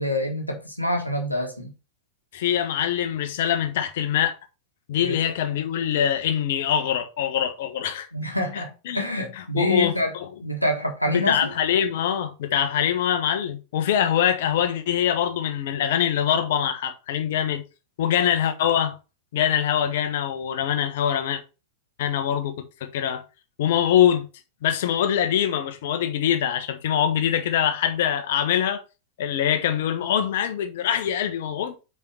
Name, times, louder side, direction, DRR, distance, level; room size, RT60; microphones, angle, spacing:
voice 1, 0.0-1.7 5.0-5.2 8.1-11.5, left 1 dB, 90° left, 1.4 m, -26 dB
voice 2, 2.3-4.3 4.9-8.1 8.5-9.0 9.4-10.3 11.1-17.6 18.0-19.0 19.3-21.4 22.0-22.5 22.8-23.2 23.6-24.3 24.6-28.8 29.2-31.8, left 9 dB, 55° left, 1.3 m, -24 dB
5.5 x 4.7 x 5.9 m
figure-of-eight pair, 90°, 0 cm